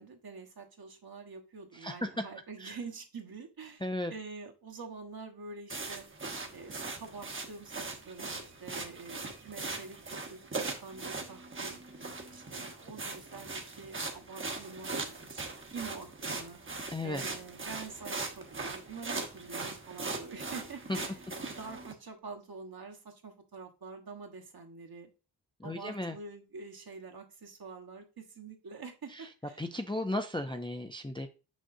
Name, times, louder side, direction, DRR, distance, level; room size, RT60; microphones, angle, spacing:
voice 1, 0.0-3.8 4.1-6.1 6.5-10.0 10.3-10.5 10.8-11.8 12.3-16.6 17.0-21.2 21.6-25.1 25.6-29.6, right 4 dB, 55° right, 1.3 m, -46 dB
voice 2, 1.7-2.2 2.6-2.7 3.8-4.1 16.9-17.2 20.9-21.0 25.6-26.2 29.1-29.3 29.6-31.3, left 1 dB, 10° left, 0.4 m, -35 dB
sound 1, 5.7-21.9, right 3 dB, 25° right, 1.0 m, -40 dB
6.6 x 6.3 x 2.6 m
wide cardioid pair, 155°, 44 cm